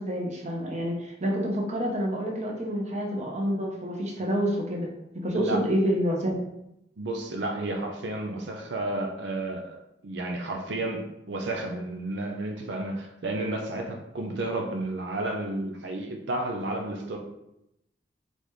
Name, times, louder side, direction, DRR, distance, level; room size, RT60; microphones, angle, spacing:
voice 1, 0.0-4.9 5.2-6.4, equal, 40° right, 0 dB, 0.9 m, -28 dB
voice 2, 7.0-17.2, right 2 dB, 90° right, 2 dB, 0.6 m, -32 dB
4.0 x 3.4 x 3.2 m, 0.83 s
head